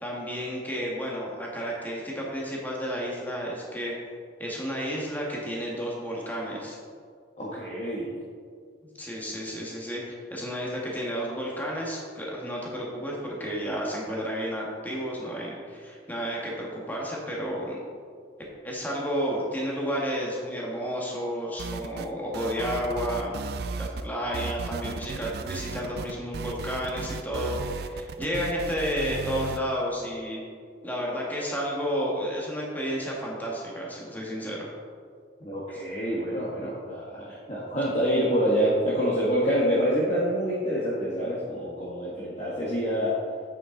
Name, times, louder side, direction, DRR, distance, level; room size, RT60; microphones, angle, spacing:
voice 1, 0.0-3.9 4.4-6.8 9.0-17.8 18.6-23.4 23.7-30.4 30.8-34.7 35.7-35.8, equal, 10° left, -3 dB, 1.6 m, -31 dB
voice 2, 7.4-8.2 35.4-43.2, equal, 40° left, -8 dB, 1.4 m, -27 dB
sound 1, 21.6-22.1 22.3-24.1 24.3-29.6, right 4 dB, 60° right, 0.4 m, -35 dB
8.7 x 7.1 x 3.9 m, 2.1 s
head